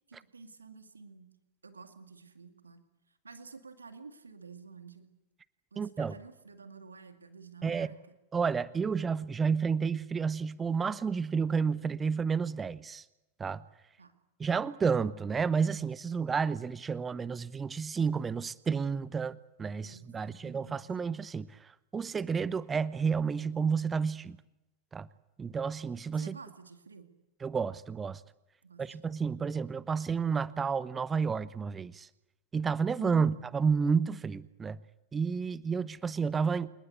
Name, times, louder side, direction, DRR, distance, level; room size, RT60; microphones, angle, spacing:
voice 1, 0.1-1.3 1.6-2.8 3.2-5.1 5.7-8.0 14.0-14.1 19.8-20.8 26.1-27.1 28.6-29.0 33.0-33.4, right 4 dB, 75° right, 8 dB, 2.2 m, -50 dB
voice 2, 5.8-6.1 7.6-7.9 8.3-13.0 13.4-13.6 14.4-24.4 24.9-25.1 25.4-26.4 27.4-28.2 28.8-32.1 32.5-34.8 35.1-36.7, right 5 dB, 15° right, 18 dB, 0.9 m, -31 dB
28.0 x 19.5 x 8.2 m, 0.93 s
figure-of-eight pair, 90°, 0 cm